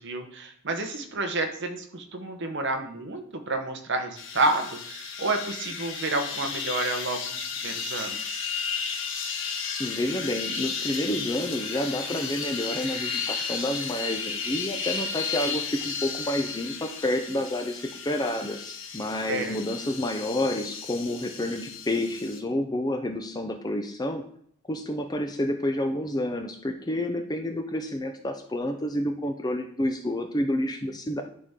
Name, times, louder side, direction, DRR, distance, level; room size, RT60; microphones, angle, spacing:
voice 1, 0.0-8.5 19.3-19.6, right 2 dB, 50° right, 5 dB, 0.9 m, -30 dB
sound 1, 4.2-22.4, left 5 dB, 55° left, 1.0 m, -34 dB
voice 2, 9.8-24.2 24.7-31.2, left 1 dB, 15° left, 6 dB, 0.5 m, -29 dB
11.0 x 4.2 x 3.7 m, 0.63 s
head